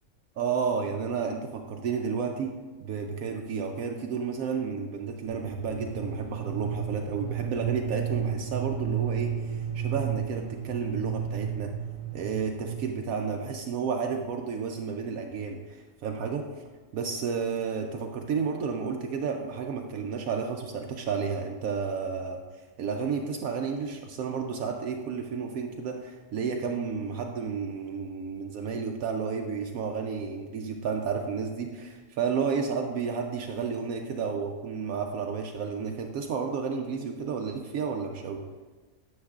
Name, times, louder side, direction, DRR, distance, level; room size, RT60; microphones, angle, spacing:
voice 1, 0.4-2.5 2.8-11.7 12.1-16.4 16.9-22.4 22.8-38.4, right 5 dB, 75° right, 3 dB, 1.0 m, -31 dB
sound 1, 5.3-13.1, right 8 dB, 5° right, 1.6 m, -33 dB
9.7 x 7.2 x 2.4 m, 1.3 s
omnidirectional pair, 1.5 m